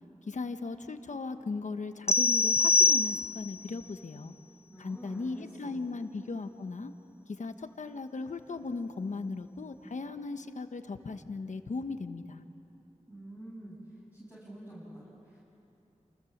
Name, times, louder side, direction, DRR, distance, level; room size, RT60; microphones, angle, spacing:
voice 1, 0.2-4.3 4.8-6.9 7.3-12.4, left 3 dB, 75° left, 8 dB, 1.2 m, -37 dB
sound 1, 2.1-3.6, left 4 dB, 20° left, 0.7 m, -24 dB
voice 2, 4.7-6.0 13.1-13.8 14.1-15.4, right 1 dB, 15° right, -9 dB, 7.5 m, -48 dB
28.5 x 28.0 x 7.3 m, 2.9 s
wide cardioid pair, 80°, 13 cm